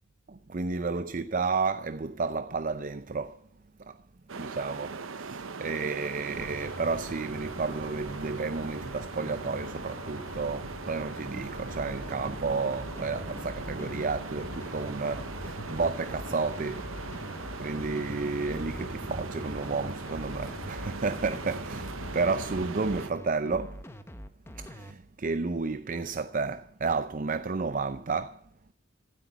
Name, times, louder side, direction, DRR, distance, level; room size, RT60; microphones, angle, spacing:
voice 1, 0.3-3.4 3.9-4.0 4.4-16.8 17.6-21.9 22.1-23.7 24.6-28.4, right 4 dB, 40° right, 0.5 m, -31 dB
sound 1, 4.3-23.1, right 4 dB, 70° right, 0.9 m, -41 dB
sound 2, 6.3-22.7, left 1 dB, 90° left, 2.7 m, -43 dB
sound 3, 11.7-24.9, equal, 10° left, 1.0 m, -44 dB
15.5 x 8.1 x 9.1 m
head